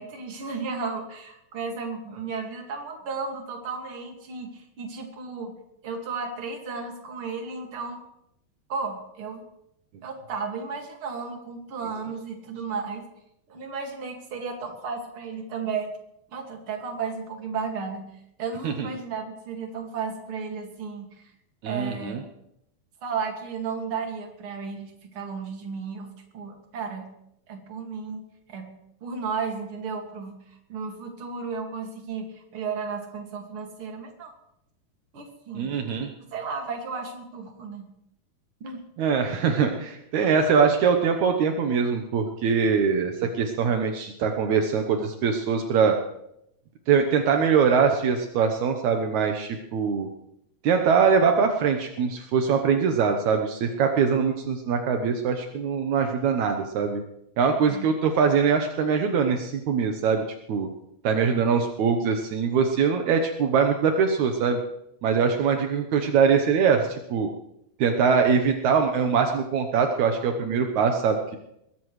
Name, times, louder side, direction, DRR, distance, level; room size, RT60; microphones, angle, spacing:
voice 1, 0.0-5.6 5.8-8.0 8.7-9.4 10.0-13.0 13.5-15.9 16.3-18.1 18.4-21.3 21.7-22.2 23.0-26.1 26.3-27.1 27.5-28.2 28.5-28.7 29.0-30.4 30.7-34.3 35.1-35.8 36.3-37.9 38.6-38.8 57.7-57.9, right 5 dB, 40° right, 3 dB, 2.2 m, -34 dB
voice 2, 21.6-22.2 35.5-36.1 39.0-46.0 46.9-50.1 50.6-57.0 57.4-60.2 60.5-60.7 61.0-64.6 65.0-67.3 67.8-71.4, right 6 dB, 75° right, 4 dB, 1.7 m, -23 dB
21.5 x 15.5 x 3.2 m, 0.79 s
omnidirectional pair, 4.8 m